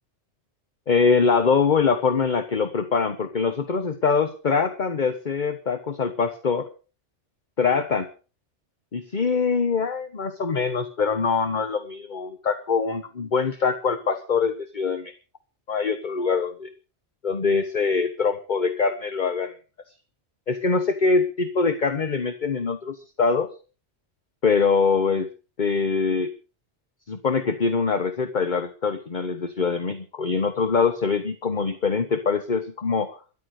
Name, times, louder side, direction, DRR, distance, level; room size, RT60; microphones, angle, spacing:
voice 1, 0.9-6.7 7.6-8.1 8.9-15.1 15.7-16.7 17.2-19.6 20.5-23.5 24.4-25.3 25.6-26.3 27.1-33.2, left 5 dB, 45° left, 10 dB, 1.3 m, -23 dB
13.5 x 11.5 x 6.4 m, 0.37 s
omnidirectional pair, 1.2 m